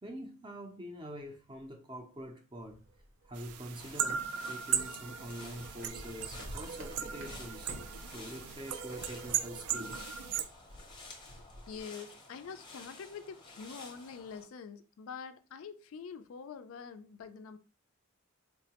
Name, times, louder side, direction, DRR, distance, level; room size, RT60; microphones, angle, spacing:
voice 1, 0.0-2.8 3.3-10.1, equal, 20° right, 0.5 m, -45 dB
sound 1, 2.6-11.8, equal, 65° right, 0.8 m, -51 dB
sound 2, 3.3-10.4, right 8 dB, 80° right, 0.4 m, -37 dB
sound 3, 3.8-14.4, left 2 dB, 20° left, 0.6 m, -52 dB
voice 2, 11.7-17.6, left 6 dB, 65° left, 0.3 m, -45 dB
4.4 x 2.1 x 2.8 m
head